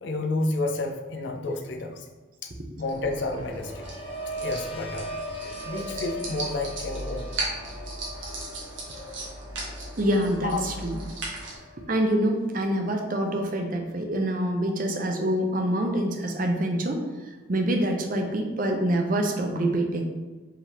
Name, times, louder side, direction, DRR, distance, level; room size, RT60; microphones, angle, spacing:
voice 1, 0.0-2.1 2.4-2.5 2.8-3.8 4.4-5.2 5.6-7.3 10.4-10.6, left 2 dB, 70° left, 3 dB, 0.5 m, -30 dB
sound 1, 2.8-11.6, right 2 dB, 85° right, 1.3 m, -37 dB
sound 2, 3.5-13.2 13.5-14.0, equal, 25° left, 0.6 m, -40 dB
voice 2, 10.0-11.0 11.8-17.0 17.5-20.0, right 1 dB, 45° right, 3 dB, 0.6 m, -26 dB
4.8 x 3.5 x 3.0 m, 1.3 s
head